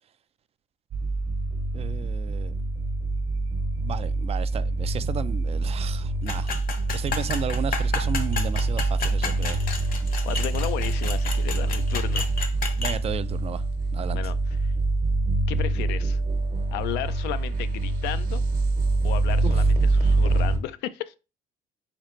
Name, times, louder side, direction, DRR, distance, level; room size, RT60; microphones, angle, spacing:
sound 1, 0.9-20.6, right 2 dB, 60° right, 1.2 m, -25 dB
voice 1, 1.7-2.5 3.8-6.5 6.9-9.6 12.8-13.6 13.9-14.3 19.4-19.6, right 8 dB, 35° right, 0.3 m, -34 dB
sound 2, 6.3-13.0, left 5 dB, 60° left, 0.8 m, -32 dB
voice 2, 10.2-12.3 14.1-14.4 14.6-14.7 15.5-16.2 16.7-18.4 19.0-21.2, left 13 dB, 85° left, 0.4 m, -34 dB
4.2 x 4.0 x 3.1 m
cardioid pair, 110°, 17 cm